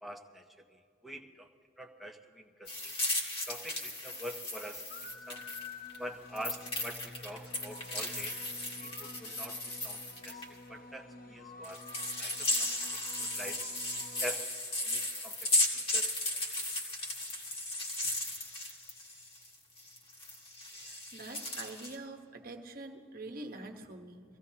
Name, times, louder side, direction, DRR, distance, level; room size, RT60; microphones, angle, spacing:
voice 1, 0.0-1.5 1.8-2.9 3.4-4.9 5.3-5.5 6.0-8.4 8.8-13.6 14.2-14.5 14.8-16.4, equal, ahead, 2 dB, 0.8 m, -46 dB
sound 1, 2.7-6.0 6.4-10.4 11.6-19.5 19.8-22.0, left 1 dB, 30° left, 1.8 m, -35 dB
sound 2, 4.9-14.3, left 3 dB, 50° left, 0.8 m, -50 dB
voice 2, 20.7-24.2, right 2 dB, 50° right, 5 dB, 1.2 m, -45 dB
23.0 x 16.0 x 2.9 m, 2.6 s
head